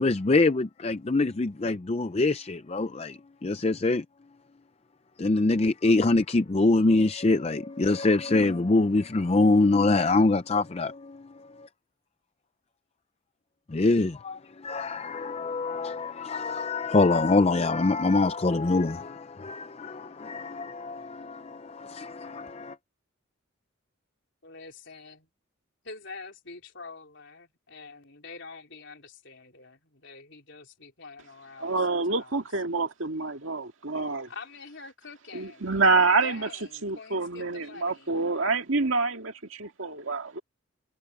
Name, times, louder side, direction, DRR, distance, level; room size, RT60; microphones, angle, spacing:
voice 1, 0.0-4.0 5.2-11.5 13.7-22.8, left 3 dB, 30° left, 0.5 m, -24 dB
voice 2, 24.4-25.3 25.8-32.4 34.3-35.6 36.2-38.1, left 4 dB, 55° left, 4.5 m, -46 dB
voice 3, 31.6-34.3 35.3-36.5 36.8-40.4, right 3 dB, 65° right, 2.1 m, -27 dB
head